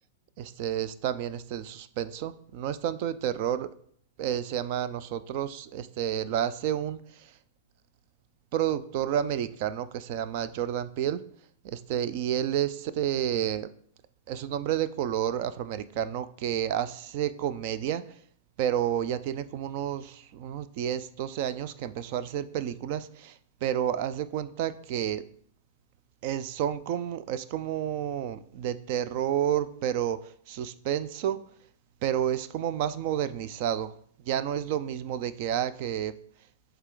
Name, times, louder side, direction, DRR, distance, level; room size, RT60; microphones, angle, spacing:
voice 1, 0.4-3.7 4.2-7.3 8.5-11.2 11.6-13.7 14.3-18.0 18.6-25.2 26.2-31.4 32.0-33.9 34.3-36.1, right 10 dB, 40° right, 14 dB, 0.4 m, -30 dB
7.7 x 3.3 x 3.8 m, 0.63 s
supercardioid pair, 165°, 0 cm